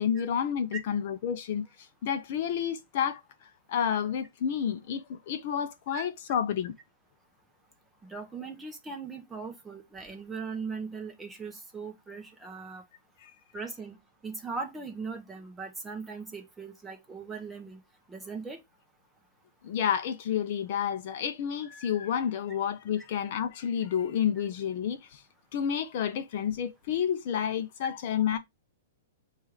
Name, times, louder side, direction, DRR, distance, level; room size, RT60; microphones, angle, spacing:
voice 1, 0.0-1.7 2.0-6.7 13.2-13.3 19.6-25.2 25.5-28.4, left 8 dB, 40° left, 0.5 m, -30 dB
voice 2, 8.0-12.8 13.5-14.0 14.2-17.8 18.1-18.6, right 4 dB, 5° right, 0.6 m, -39 dB
7.0 x 2.4 x 3.1 m
hypercardioid pair, 175°, 0 cm